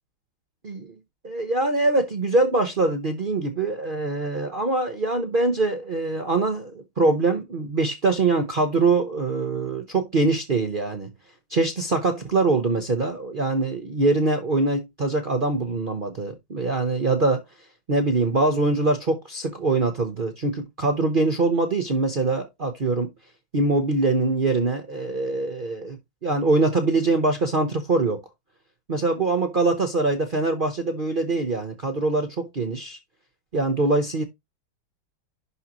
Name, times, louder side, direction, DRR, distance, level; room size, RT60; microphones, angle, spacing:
voice 1, 0.6-1.0 1.2-11.1 11.5-17.4 17.9-23.1 23.5-28.2 28.9-33.0 33.5-34.2, right 3 dB, 75° right, 0.4 m, -23 dB
11.0 x 3.8 x 2.9 m
omnidirectional pair, 2.2 m